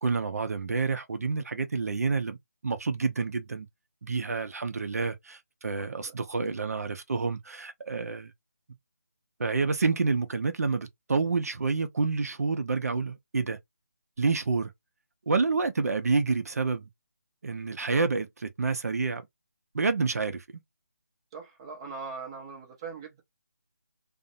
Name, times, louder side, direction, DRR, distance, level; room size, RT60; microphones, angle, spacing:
voice 1, 0.0-2.4 2.6-3.7 4.0-8.3 9.4-13.6 14.2-14.7 15.3-16.9 17.4-19.2 19.7-20.4, right 4 dB, 65° right, 0.5 m, -28 dB
voice 2, 5.8-6.2 21.3-23.2, right 5 dB, 20° right, 0.5 m, -41 dB
2.5 x 2.0 x 2.4 m
figure-of-eight pair, 165°, 9 cm